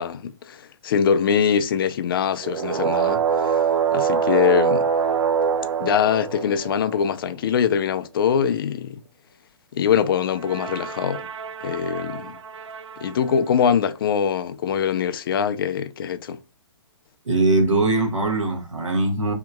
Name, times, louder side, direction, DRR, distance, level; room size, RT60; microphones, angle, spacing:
voice 1, 0.0-3.6 3.9-4.9 5.8-9.0 9.7-11.3 11.6-12.4 13.0-16.4, left 8 dB, 45° left, 0.4 m, -23 dB
sound 1, 2.4-7.0 10.4-13.2, right 7 dB, 65° right, 0.4 m, -24 dB
voice 2, 17.2-19.3, right 2 dB, 85° right, 1.2 m, -21 dB
2.8 x 2.8 x 2.2 m
figure-of-eight pair, 130°, 16 cm